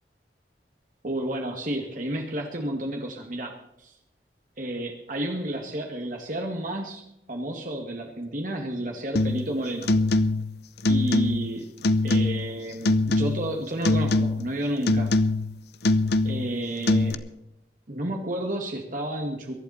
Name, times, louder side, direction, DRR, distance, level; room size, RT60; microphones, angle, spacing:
voice 1, 1.0-3.9 4.6-9.9 10.9-11.7 12.0-15.1 16.2-17.2 17.9-19.5, right 1 dB, 50° right, 2 dB, 2.1 m, -31 dB
sound 1, 9.2-9.5 9.8-10.5 10.8-11.5 11.8-12.5 12.9-13.6 13.8-14.5 14.9-15.5 15.8-16.5 16.9-17.1, left 2 dB, 65° left, 0.8 m, -23 dB
22.5 x 11.5 x 4.3 m, 0.83 s
head